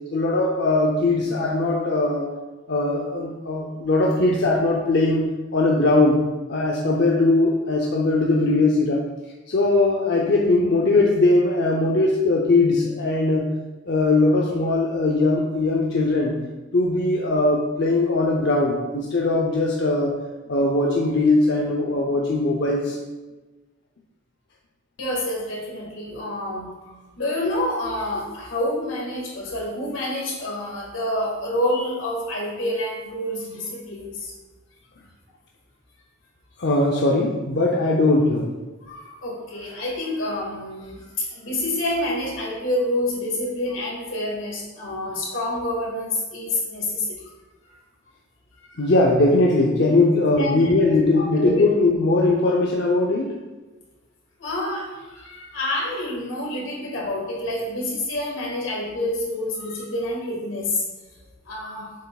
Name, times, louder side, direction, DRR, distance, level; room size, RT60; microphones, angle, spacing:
voice 1, 0.1-2.3 2.7-6.2 6.5-9.0 9.5-13.5 13.9-16.4 16.7-20.1 20.5-23.0 36.6-38.5 48.8-53.3, left 2 dB, 60° left, -1 dB, 0.6 m, -20 dB
voice 2, 25.0-34.3 38.9-47.2 48.5-48.9 50.3-50.9 51.1-51.6 54.4-60.8 61.5-61.9, left 1 dB, 90° left, -3 dB, 2.0 m, -28 dB
7.4 x 5.8 x 2.4 m, 1.2 s
head